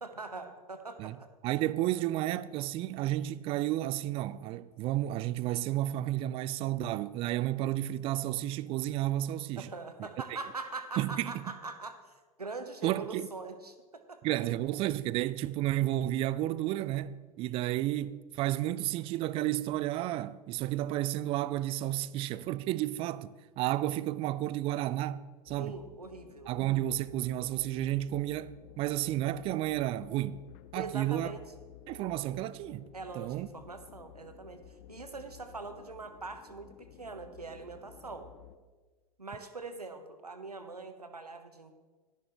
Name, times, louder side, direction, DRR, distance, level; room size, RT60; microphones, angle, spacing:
voice 1, 0.0-1.3 2.0-2.2 9.6-14.2 25.6-26.5 30.7-31.4 32.9-38.3 39.2-41.7, right 3 dB, 85° right, 0.9 m, -43 dB
voice 2, 1.4-9.7 11.0-11.3 12.8-13.3 14.2-25.8 26.5-30.4 30.7-31.3 31.9-32.8 33.2-33.5, right 14 dB, 30° right, 0.3 m, -32 dB
sound 1, 25.5-38.6, left 11 dB, 45° left, 0.6 m, -54 dB
12.0 x 10.5 x 3.4 m
figure-of-eight pair, 85°, 19 cm